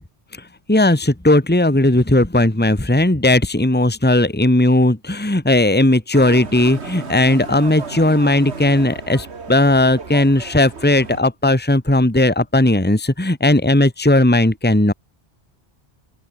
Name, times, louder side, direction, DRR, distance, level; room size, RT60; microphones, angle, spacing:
voice 1, 0.7-14.9, left 1 dB, 10° left, 1.8 m, -16 dB
Motorcycle, 6.1-11.2, right 4 dB, 80° right, 2.2 m, -34 dB
open air
omnidirectional pair, 1.1 m